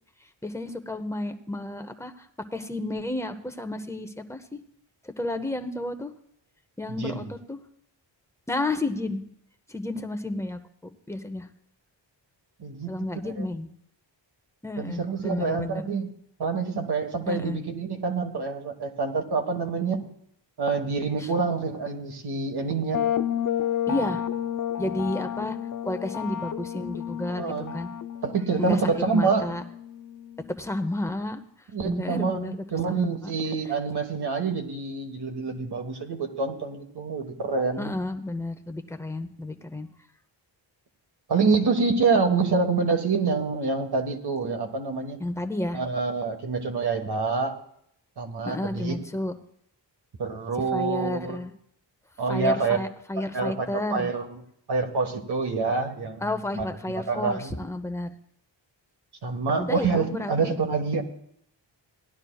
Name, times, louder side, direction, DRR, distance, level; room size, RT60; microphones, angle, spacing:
voice 1, 0.4-2.3 2.5-4.6 5.0-6.1 6.8-7.6 8.5-9.2 9.7-11.5 12.9-13.7 14.6-15.8 17.3-17.6 21.2-21.3 23.9-24.2 24.8-25.6 25.8-27.5 27.7-27.9 28.6-28.8 29.1-29.6 30.6-31.4 31.8-33.4 37.8-39.9 45.2-45.8 48.4-49.3 50.7-51.5 52.3-54.1 56.2-58.1 59.6-60.5, left 1 dB, 5° left, 6 dB, 0.7 m, -31 dB
voice 2, 6.9-7.3 12.6-12.9 13.2-13.4 14.8-16.1 16.4-20.0 20.6-23.0 27.4-27.7 28.2-29.5 31.7-37.9 41.3-45.2 45.7-47.5 48.2-49.0 50.2-51.4 52.2-52.8 53.2-54.4 54.7-56.3 56.5-57.5 59.2-61.0, right 4 dB, 55° right, 4 dB, 1.5 m, -27 dB
sound 1, 22.9-30.6, left 10 dB, 45° left, 0.5 m, -31 dB
18.0 x 11.5 x 2.3 m, 0.71 s
wide cardioid pair, 150°, 46 cm